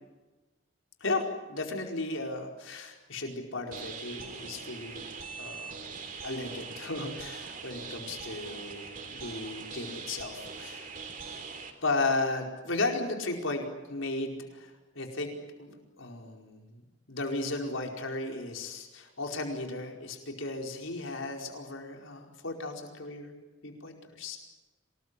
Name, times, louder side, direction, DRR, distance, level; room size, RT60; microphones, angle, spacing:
voice 1, 1.0-5.0 5.4-5.8 6.2-10.9 11.8-16.6 17.1-23.3 23.6-24.4, left 2 dB, 85° left, 2 dB, 4.8 m, -35 dB
sound 1, 3.7-11.7, right 5 dB, 45° right, 3.5 m, -42 dB
27.5 x 20.0 x 9.9 m, 1.2 s
head